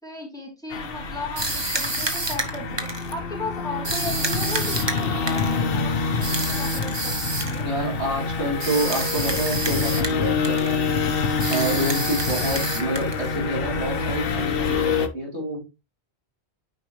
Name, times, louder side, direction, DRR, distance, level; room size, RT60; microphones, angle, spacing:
voice 1, 0.0-7.1 7.4-7.7, left 2 dB, 5° left, -2 dB, 3.0 m, -36 dB
sound 1, 0.7-15.1, left 4 dB, 60° left, 1.0 m, -26 dB
sound 2, 1.4-3.1 3.8-5.6 6.2-7.6 8.6-10.2 10.4-10.8 11.4-13.3, right 2 dB, 25° right, 1.1 m, -28 dB
voice 2, 7.6-11.2 11.5-15.6, right 1 dB, 85° right, -3 dB, 3.8 m, -28 dB
9.4 x 4.9 x 3.1 m, 0.26 s
omnidirectional pair, 1.1 m